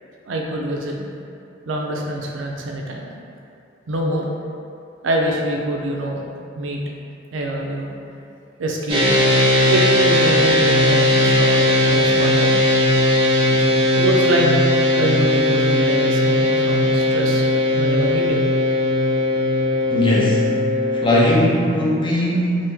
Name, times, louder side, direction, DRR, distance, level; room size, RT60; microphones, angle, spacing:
voice 1, 0.3-1.1 1.7-3.1 3.9-4.2 5.0-6.2 6.6-6.8 7.3-7.9 8.6-9.2 9.7-12.6 13.9-14.6 14.9-17.5 17.8-18.4, right 1 dB, 85° right, 0 dB, 0.5 m, -24 dB
sound 1, 8.9-21.0, left 1 dB, 30° right, 0.7 m, -17 dB
voice 2, 19.9-20.6 20.9-22.6, left 1 dB, 25° left, -5 dB, 0.5 m, -18 dB
3.0 x 2.6 x 3.4 m, 2.5 s
head